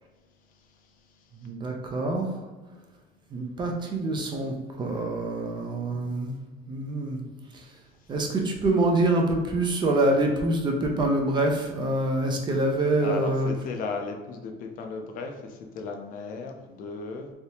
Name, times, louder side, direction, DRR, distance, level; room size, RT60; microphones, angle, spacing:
voice 1, 0.5-1.3 5.8-6.0 13.0-17.3, left 4 dB, 55° left, 4 dB, 0.5 m, -36 dB
voice 2, 1.4-2.3 3.3-6.3 6.7-7.2 7.5-7.6 8.1-13.5, right 2 dB, 25° right, 2 dB, 0.4 m, -25 dB
3.3 x 2.7 x 2.8 m, 1.3 s
cardioid pair, 165°, 17 cm